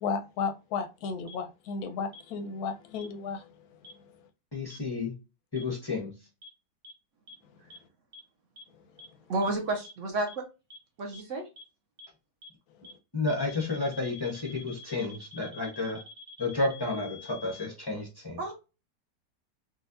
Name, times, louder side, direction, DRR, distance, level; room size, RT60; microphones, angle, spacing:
voice 1, 0.0-3.4, left 5 dB, 70° left, 0.9 m, -33 dB
sound 1, 1.3-1.4 2.1-2.2 3.0-3.1 3.8-3.9 4.7-4.8 5.6-5.7 6.4-6.5 6.8-6.9 7.3-7.4 7.7-7.8 8.1-8.2 8.6-8.7 9.0-9.1 9.4-9.5 9.8-9.9 10.3-10.4 10.7-10.8 11.1-11.2 11.6-11.7 12.0-12.1 12.4-12.5 12.8-12.9 13.3-17.7, left 4 dB, 30° right, 0.7 m, -47 dB
voice 2, 4.5-5.1 5.5-6.1 13.1-16.0 16.4-18.4, left 3 dB, 35° left, 0.4 m, -31 dB
voice 3, 9.3-10.4 11.0-11.4 18.4-18.5, right 2 dB, 60° right, 0.8 m, -30 dB
4.0 x 2.3 x 2.6 m
omnidirectional pair, 2.0 m